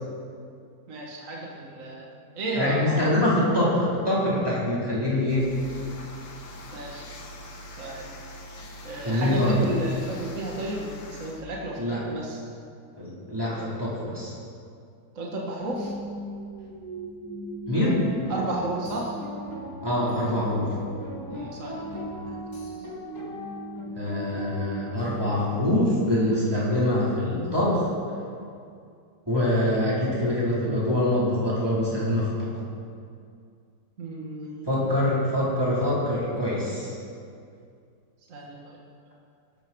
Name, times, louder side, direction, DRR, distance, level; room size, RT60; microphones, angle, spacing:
voice 1, 0.9-2.1 2.4-3.1 6.7-7.0 7.7-8.1 8.8-12.4 15.2-15.9 18.3-19.1 21.3-22.4 34.0-34.7 38.3-38.8, right 2 dB, 50° right, -2 dB, 2.0 m, -33 dB
voice 2, 2.5-5.5 9.0-9.6 11.8-12.0 13.0-14.3 17.7-18.0 19.8-20.7 24.0-27.9 29.3-32.5 34.7-36.9, left 1 dB, 15° right, -8 dB, 4.9 m, -24 dB
sound 1, 5.3-11.4, left 1 dB, 75° left, 2.2 m, -43 dB
sound 2, 15.6-27.8, right 2 dB, 70° right, 2.4 m, -39 dB
sound 3, 17.8-25.6, left 2 dB, 55° left, 3.3 m, -41 dB
20.5 x 13.0 x 4.8 m, 2.3 s
omnidirectional pair, 1.8 m